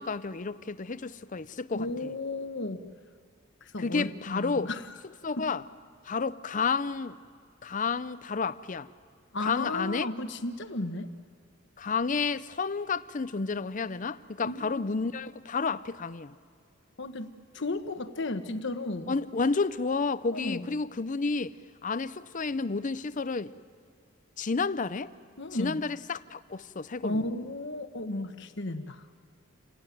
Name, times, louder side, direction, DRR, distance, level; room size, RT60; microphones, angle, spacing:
voice 1, 0.0-2.1 3.8-4.7 5.2-5.6 6.0-7.2 7.6-8.9 9.4-10.1 11.8-16.3 19.1-21.5 21.8-23.5 24.4-25.1 25.6-27.2, left 4 dB, 40° left, 0.6 m, -31 dB
voice 2, 1.7-2.8 3.6-4.8 5.4-5.5 9.3-11.1 14.4-15.0 17.0-19.1 20.3-20.6 25.4-25.8 27.0-29.0, left 2 dB, 60° left, 1.2 m, -34 dB
28.5 x 18.0 x 9.2 m
head